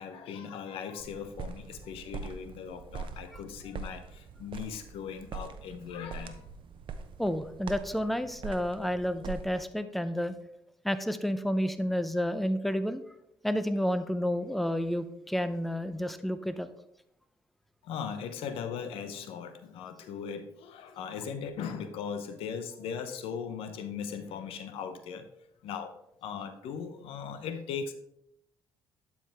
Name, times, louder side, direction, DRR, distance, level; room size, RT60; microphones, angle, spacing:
voice 1, 0.0-6.5 17.8-25.3 25.6-25.9 26.2-27.9, left 7 dB, 75° left, 10 dB, 0.8 m, -39 dB
sound 1, 1.0-9.6, right 5 dB, 60° right, 0.8 m, -43 dB
voice 2, 7.2-10.3 10.8-13.0 13.4-16.7, equal, ahead, 11 dB, 0.6 m, -30 dB
11.5 x 4.8 x 3.5 m, 0.78 s
supercardioid pair, 55°, 10 cm